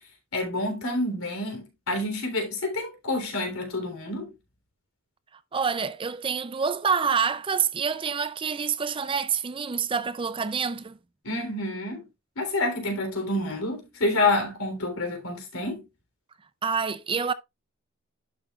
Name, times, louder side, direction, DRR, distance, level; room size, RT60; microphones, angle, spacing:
voice 1, 0.3-4.3 11.2-12.1 12.3-15.8, left 2 dB, 80° left, 3.5 m, -28 dB
voice 2, 5.5-11.0 16.6-17.3, right 6 dB, 25° right, 0.4 m, -27 dB
11.5 x 6.1 x 2.4 m
head